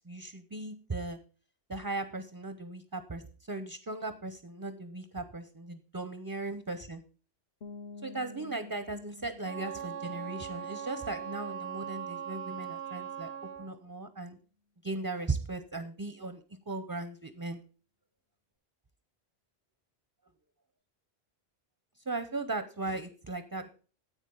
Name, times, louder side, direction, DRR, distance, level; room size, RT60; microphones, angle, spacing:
voice 1, 0.1-1.2 1.7-7.0 8.0-13.3 13.6-14.4 14.8-17.6 22.1-23.7, right 2 dB, 25° right, 10 dB, 0.5 m, -37 dB
sound 1, 7.6-13.2, left 3 dB, 50° left, 0.7 m, -52 dB
Wind instrument woodwind instrument, 9.4-13.7, right 8 dB, 75° right, 0.9 m, -40 dB
10.0 x 8.1 x 3.8 m, 0.36 s
omnidirectional pair, 1.1 m